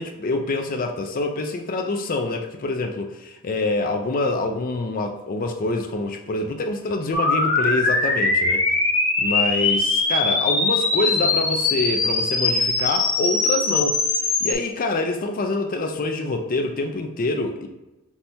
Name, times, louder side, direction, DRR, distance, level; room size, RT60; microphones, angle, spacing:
voice 1, 0.0-8.6 9.2-14.0 14.4-17.7, left 2 dB, 40° left, 4 dB, 0.4 m, -26 dB
sound 1, 7.1-14.5, left 3 dB, 60° left, 1.1 m, -21 dB
5.9 x 3.3 x 2.8 m, 1.0 s
head